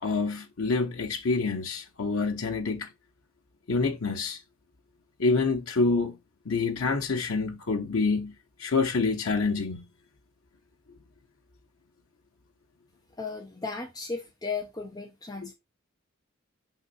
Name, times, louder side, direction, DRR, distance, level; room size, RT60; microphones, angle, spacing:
voice 1, 0.0-2.9 3.7-4.4 5.2-6.1 6.5-8.3 8.6-9.8, left 4 dB, 85° left, 0.9 m, -27 dB
voice 2, 13.2-15.5, left 4 dB, 20° left, 0.8 m, -35 dB
6.1 x 3.9 x 4.0 m
head